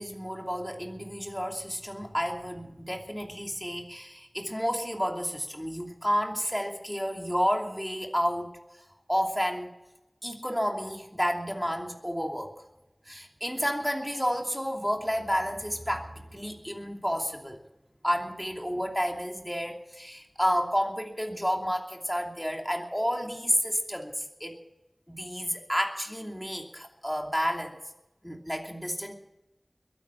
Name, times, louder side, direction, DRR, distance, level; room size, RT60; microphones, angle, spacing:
voice 1, 0.0-8.6 9.1-9.7 10.2-12.5 13.1-17.6 18.0-24.6 25.1-27.8 28.2-29.1, equal, 5° left, 2 dB, 2.8 m, -30 dB
22.0 x 11.0 x 5.8 m, 0.91 s
wide cardioid pair, 50°, 0 cm